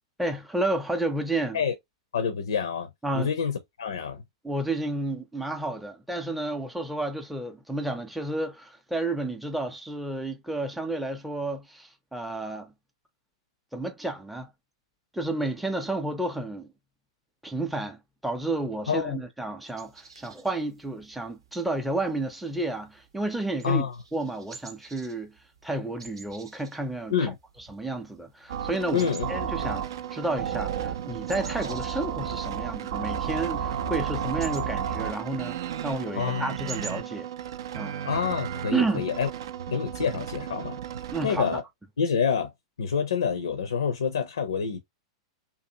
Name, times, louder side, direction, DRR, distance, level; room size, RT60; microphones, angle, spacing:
voice 1, 0.2-1.6 3.0-3.3 4.4-12.7 13.7-14.5 15.1-16.7 17.4-23.9 24.1-25.4 25.6-27.3 27.7-29.8 30.1-37.3 37.7-38.0 38.7-39.1 41.1-41.5, right 2 dB, ahead, 0.5 m, -31 dB
voice 2, 2.1-2.9 3.1-4.2 18.9-19.2 23.6-23.9 27.1-27.4 28.9-29.3 29.6-29.7 36.2-36.4 38.0-39.3 39.7-40.8 41.2-41.6 42.0-42.5 42.8-44.8, left 7 dB, 75° left, 0.5 m, -27 dB
sound 1, 19.6-37.0, right 5 dB, 85° right, 0.7 m, -49 dB
sound 2, 28.5-41.6, right 8 dB, 65° right, 0.4 m, -33 dB
2.7 x 2.3 x 2.7 m
hypercardioid pair, 100°, 3 cm